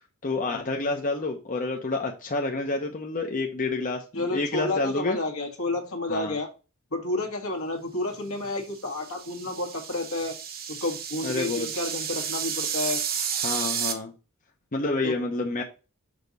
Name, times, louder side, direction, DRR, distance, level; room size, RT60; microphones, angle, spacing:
voice 1, 0.2-5.2 6.1-6.4 11.2-11.7 13.4-14.1 14.7-15.6, left 3 dB, 40° left, 2 dB, 0.9 m, -29 dB
voice 2, 4.1-6.5 6.9-10.4 10.7-13.0 15.0-15.1, left 2 dB, 70° left, 3 dB, 1.7 m, -30 dB
sound 1, 8.8-13.9, right 7 dB, 45° right, 1.0 m, -32 dB
6.6 x 4.0 x 5.3 m, 0.32 s
head